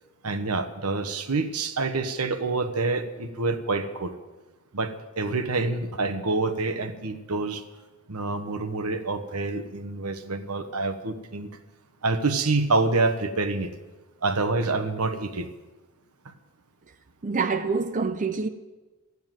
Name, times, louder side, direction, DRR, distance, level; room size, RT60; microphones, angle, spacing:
voice 1, 0.2-4.1 4.7-7.6 8.1-11.5 12.0-13.7 14.2-15.5, right 3 dB, 85° right, 1.2 m, -27 dB
voice 2, 17.2-18.5, right 4 dB, 35° right, 0.6 m, -26 dB
13.5 x 9.5 x 9.0 m
head